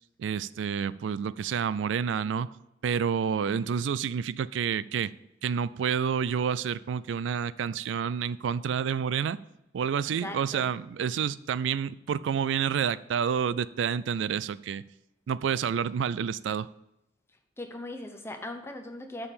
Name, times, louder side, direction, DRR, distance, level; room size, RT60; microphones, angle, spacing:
voice 1, 0.2-2.5 2.8-5.1 5.4-9.4 9.7-14.8 15.3-16.7, right 7 dB, 90° right, 0.3 m, -29 dB
voice 2, 10.2-10.7 17.6-19.3, left 1 dB, 15° left, 0.9 m, -39 dB
6.9 x 5.6 x 6.6 m
head